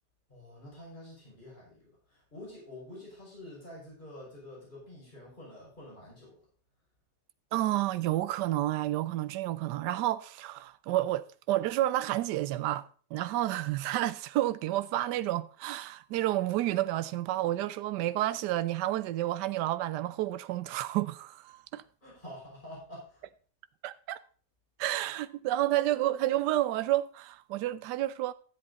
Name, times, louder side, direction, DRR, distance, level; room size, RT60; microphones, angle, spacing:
voice 1, 0.3-6.4 22.0-23.2, left 1 dB, 25° left, 6.1 m, -48 dB
voice 2, 7.5-12.8 13.1-21.8 23.8-24.2 24.8-28.3, right 14 dB, 75° right, 1.2 m, -30 dB
12.5 x 7.9 x 4.0 m
omnidirectional pair, 1.9 m